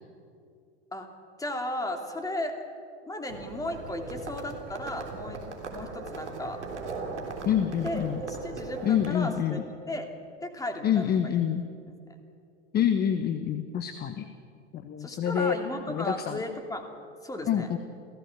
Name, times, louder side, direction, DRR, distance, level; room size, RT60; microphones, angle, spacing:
voice 1, 1.4-2.6 3.1-5.4 5.7-6.6 7.8-10.1 10.4-11.3 15.0-16.9 17.2-17.8, left 1 dB, 10° left, 4 dB, 2.9 m, -35 dB
Livestock farm animals working animals, 3.3-9.1, right 4 dB, 75° right, 3.6 m, -39 dB
voice 2, 7.4-8.2 8.8-9.6 10.8-11.7 12.7-14.3 14.7-15.6 15.9-16.4 17.5-17.8, left 9 dB, 25° left, 10 dB, 1.2 m, -27 dB
29.5 x 16.0 x 7.2 m, 2.4 s
figure-of-eight pair, 90°, 35 cm